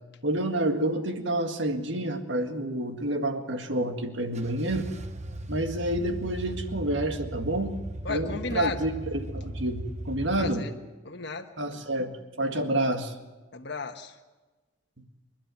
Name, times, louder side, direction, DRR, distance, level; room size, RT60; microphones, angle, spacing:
voice 1, 0.2-4.9 5.5-7.7 8.1-10.6 11.6-12.1 12.4-13.1, right 1 dB, 65° right, 6 dB, 1.9 m, -28 dB
sound 1, 4.3-10.5, right 1 dB, 35° right, 1.0 m, -37 dB
voice 2, 8.0-8.8 10.4-10.7 11.0-11.5 13.5-14.1, left 4 dB, 55° left, 4 dB, 1.3 m, -33 dB
28.5 x 11.5 x 9.3 m, 1.2 s
head